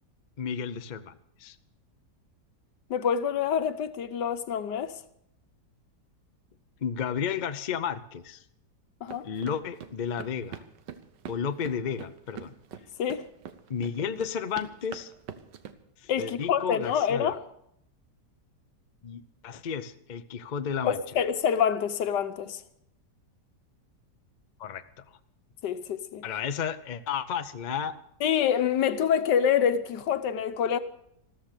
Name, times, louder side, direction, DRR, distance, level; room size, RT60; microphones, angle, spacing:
voice 1, 0.4-1.6 6.8-8.4 9.2-10.6 11.3-12.5 13.7-15.1 16.0-17.3 19.0-21.0 24.6-25.0 26.2-28.0, left 7 dB, 50° left, 0.5 m, -33 dB
voice 2, 2.9-5.0 9.0-9.3 13.0-13.2 16.1-17.4 20.8-22.6 25.6-26.2 28.2-30.8, left 8 dB, 80° left, 1.5 m, -26 dB
sound 1, 9.1-15.7, right 8 dB, 85° right, 1.6 m, -44 dB
14.0 x 13.5 x 6.7 m
omnidirectional pair, 1.8 m